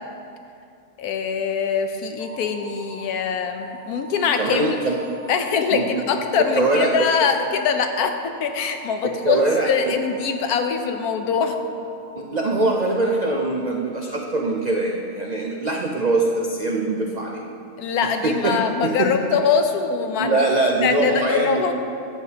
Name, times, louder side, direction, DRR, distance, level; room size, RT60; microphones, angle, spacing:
voice 1, 1.0-4.8 5.3-8.1 8.4-11.6 17.8-20.4 20.8-21.7, left 6 dB, 90° left, 6 dB, 1.2 m, -23 dB
sound 1, 2.2-14.4, right 2 dB, 45° right, 2.1 m, -44 dB
voice 2, 4.4-5.0 5.7-6.0 6.5-6.9 9.0-9.9 12.2-17.4 18.2-19.1 20.2-21.7, right 2 dB, 80° right, 0 dB, 0.3 m, -22 dB
12.0 x 8.1 x 2.8 m, 2.6 s
omnidirectional pair, 1.5 m